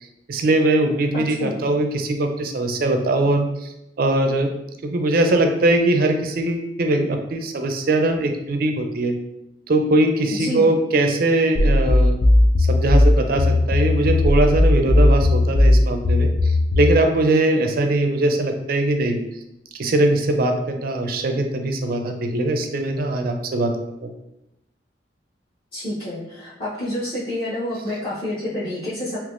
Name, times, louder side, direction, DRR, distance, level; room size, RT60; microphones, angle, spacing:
voice 1, 0.3-4.5 4.8-9.1 9.7-12.2 12.6-19.2 19.7-23.7 24.0-24.1, right 2 dB, 55° right, 5 dB, 0.4 m, -21 dB
voice 2, 1.1-1.6 10.3-10.6 25.7-29.2, left 1 dB, 35° left, -13 dB, 0.9 m, -28 dB
sound 1, 11.6-17.0, left 1 dB, 50° left, 0.4 m, -16 dB
3.4 x 2.9 x 2.5 m, 0.87 s
head